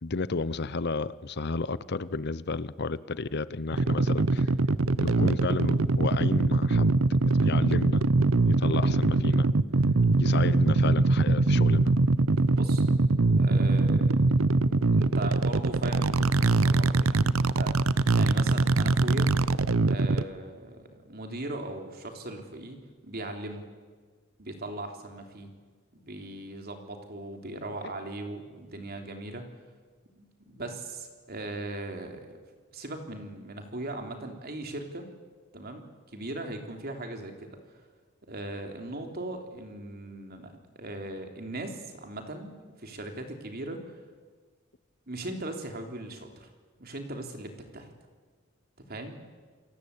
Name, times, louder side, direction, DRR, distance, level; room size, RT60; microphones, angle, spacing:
voice 1, 0.0-4.5 5.0-8.0 8.5-9.5 10.2-11.9, left 3 dB, 55° left, 17 dB, 0.7 m, -32 dB
sound 1, 3.7-20.2, right 3 dB, 75° right, 0.8 m, -23 dB
voice 2, 12.5-12.8 13.4-14.1 14.9-19.3 19.9-22.8 23.0-23.6 24.4-25.5 25.9-29.4 30.2-32.3 32.7-35.1 35.5-35.9 36.1-37.6 38.3-44.0 45.1-46.5 46.8-47.9 48.9-49.2, right 2 dB, 50° right, 4 dB, 3.6 m, -39 dB
28.5 x 22.5 x 8.5 m, 1.5 s
head